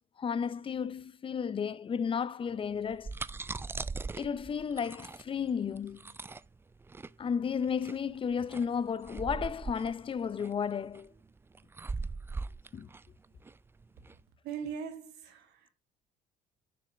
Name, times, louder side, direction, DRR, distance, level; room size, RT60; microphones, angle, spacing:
voice 1, 0.2-3.1 4.2-6.1 7.2-11.1 12.7-12.9, left 6 dB, 30° left, 0.6 m, -33 dB
sound 1, 2.7-14.2, right 4 dB, 15° right, 0.3 m, -41 dB
voice 2, 14.4-15.7, right 7 dB, 85° right, 2.4 m, -40 dB
6.8 x 6.4 x 5.2 m
cardioid pair, 110°, 17 cm